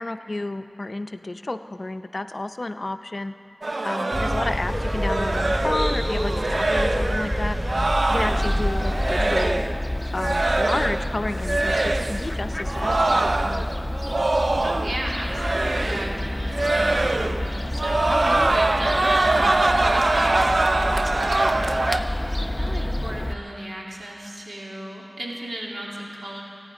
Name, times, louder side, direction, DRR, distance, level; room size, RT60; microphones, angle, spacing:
voice 1, 0.0-3.3 3.8-7.6 8.1-9.6 10.1-13.7 18.1-18.5, left 2 dB, 55° left, 9 dB, 0.6 m, -31 dB
sound 1, 3.6-9.8 10.1-11.1 11.4-12.2 12.6-15.0 15.3-16.2 16.5-17.5 17.7-22.0, right 2 dB, 65° right, 0.5 m, -23 dB
sound 2, 4.1-9.2, equal, ahead, 3.3 m, -27 dB
voice 2, 4.1-4.5 14.6-26.4, right 1 dB, 90° right, -3 dB, 2.5 m, -35 dB
Fowl, 8.1-23.3, left 1 dB, 20° left, 0.7 m, -29 dB
29.0 x 9.8 x 5.0 m, 2.8 s
wide cardioid pair, 60°, 0 cm